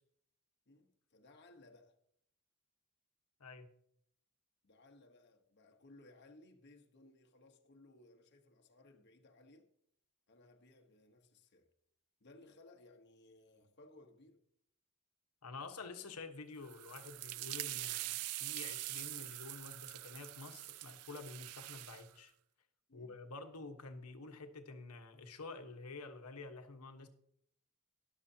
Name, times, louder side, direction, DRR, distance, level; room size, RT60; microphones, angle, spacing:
voice 1, 0.7-2.0 4.6-9.7 10.3-11.7 12.2-14.4 22.9-23.2, left 2 dB, 50° left, 1.1 m, -62 dB
voice 2, 15.4-22.3 22.9-27.1, left 3 dB, 85° left, 1.2 m, -49 dB
sound 1, 16.6-22.1, right 17 dB, 80° right, 0.3 m, -44 dB
13.0 x 10.5 x 2.8 m
head